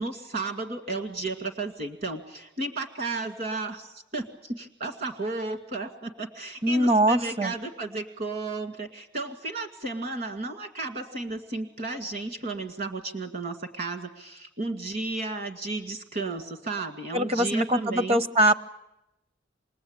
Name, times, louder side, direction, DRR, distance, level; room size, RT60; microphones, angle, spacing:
voice 1, 0.0-18.2, right 3 dB, 50° right, 5 dB, 2.1 m, -33 dB
voice 2, 6.6-7.5 17.1-18.5, right 1 dB, 35° right, 10 dB, 0.9 m, -22 dB
27.0 x 20.5 x 8.9 m, 0.93 s
head